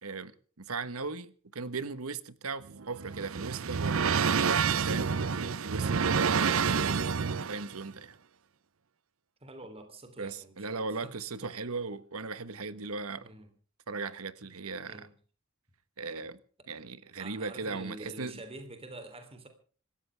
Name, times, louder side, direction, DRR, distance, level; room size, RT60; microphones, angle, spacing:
voice 1, 0.0-4.3 4.9-7.1 7.5-8.1 10.2-13.3 13.9-15.1 16.0-16.4 16.7-18.3, right 4 dB, 90° right, 1.3 m, -38 dB
sound 1, 2.6-7.7, right 6 dB, 65° right, 0.7 m, -28 dB
voice 2, 9.4-11.1 11.4-11.5 13.2-13.5 14.8-15.1 17.2-19.5, right 2 dB, 25° right, 3.3 m, -47 dB
26.0 x 14.0 x 3.5 m
head